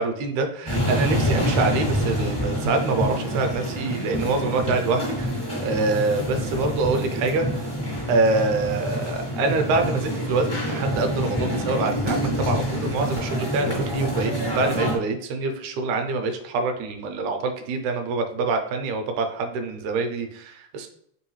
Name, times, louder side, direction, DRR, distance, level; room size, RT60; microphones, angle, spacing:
voice 1, 0.0-7.7 8.1-20.9, right 3 dB, 80° right, 5 dB, 1.9 m, -25 dB
sound 1, 0.7-15.0, equal, 40° left, 0.4 m, -27 dB
4.6 x 3.4 x 3.1 m, 0.70 s
omnidirectional pair, 3.6 m